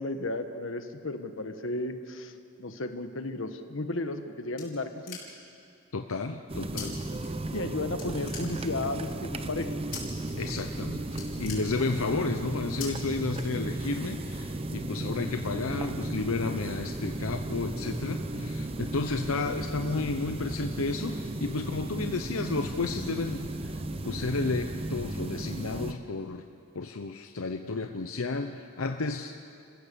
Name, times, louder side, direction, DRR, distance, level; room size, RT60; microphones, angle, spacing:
voice 1, 0.0-2.3 2.6-5.2 7.5-9.7, left 2 dB, 70° left, 7 dB, 1.4 m, -34 dB
sound 1, 4.1-5.6 6.8-6.9 7.2-7.7 8.0-8.9 9.9-10.3 10.7-10.8 11.1-12.2 12.8-12.9 13.3-14.0, left 7 dB, 45° left, 5.1 m, -42 dB
voice 2, 5.9-7.0 10.4-26.4 26.7-29.4, left 3 dB, 90° left, 6 dB, 0.8 m, -32 dB
sound 2, 6.5-25.9, right 1 dB, 25° right, 0.8 m, -35 dB
29.5 x 15.5 x 7.0 m, 2.4 s
head